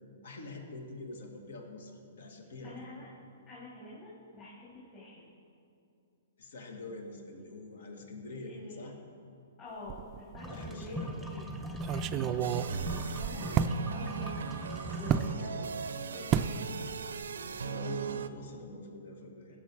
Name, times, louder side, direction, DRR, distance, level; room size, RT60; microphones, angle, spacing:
voice 1, 0.2-2.9 6.4-9.0 10.5-11.1 13.3-13.5 17.4-19.6, left 2 dB, 75° left, 3 dB, 1.7 m, -45 dB
voice 2, 2.6-3.1 3.5-5.3 8.4-8.9 9.6-14.4 14.8-15.8 16.1-16.8 17.8-18.2, left 2 dB, 30° left, -8 dB, 2.9 m, -48 dB
sound 1, 9.9-10.5 10.8-10.9 11.7-13.8 15.1-15.3 16.3-16.6 16.9-17.2 17.5-17.7, right 9 dB, 30° right, 0.3 m, -31 dB
sound 2, 10.4-15.4, equal, 5° left, 0.9 m, -39 dB
sound 3, 12.4-18.3, right 6 dB, 85° right, 0.5 m, -39 dB
15.0 x 6.7 x 4.5 m, 2.6 s
hypercardioid pair, 140°, 0 cm